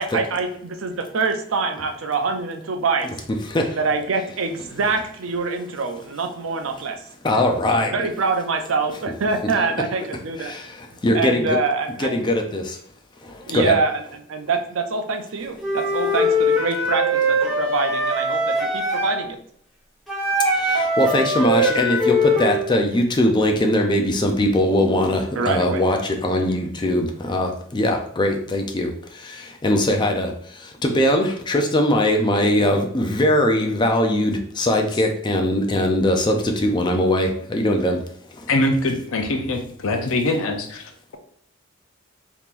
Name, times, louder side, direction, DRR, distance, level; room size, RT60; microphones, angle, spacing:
voice 1, 0.0-3.1 3.8-7.0 7.7-10.5 11.1-12.2 13.5-14.0 14.3-19.4 25.4-25.8, right 4 dB, 80° right, 6 dB, 0.5 m, -25 dB
voice 2, 7.2-7.9 11.0-11.6 12.0-12.6 13.5-13.7 21.0-28.9 29.6-30.3 30.8-36.4 36.6-38.0, left 1 dB, 20° left, 3 dB, 0.4 m, -20 dB
Wind instrument woodwind instrument, 15.6-19.2 20.1-22.7, equal, ahead, 1.0 m, -21 dB
voice 3, 38.5-41.2, left 2 dB, 85° left, 5 dB, 0.6 m, -23 dB
3.6 x 2.9 x 2.5 m, 0.64 s
head